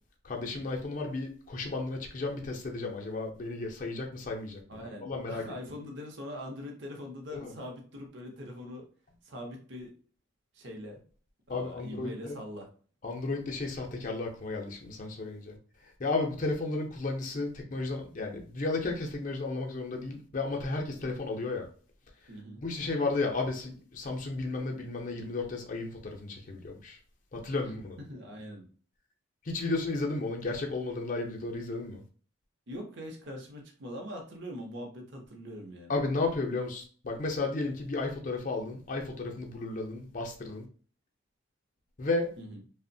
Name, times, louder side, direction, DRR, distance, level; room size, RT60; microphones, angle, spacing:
voice 1, 0.2-5.4 7.3-7.5 11.5-12.4 13.0-15.6 16.0-21.7 22.6-27.0 27.3-28.0 29.4-32.0 35.9-40.7 42.0-42.3, left 3 dB, 40° left, 0.5 m, -33 dB
voice 2, 4.7-8.8 9.2-9.9 10.5-11.0 11.5-12.7 22.3-22.6 28.1-28.7 32.7-35.9 42.4-42.6, equal, 55° right, 0.6 m, -42 dB
2.9 x 2.0 x 2.6 m
head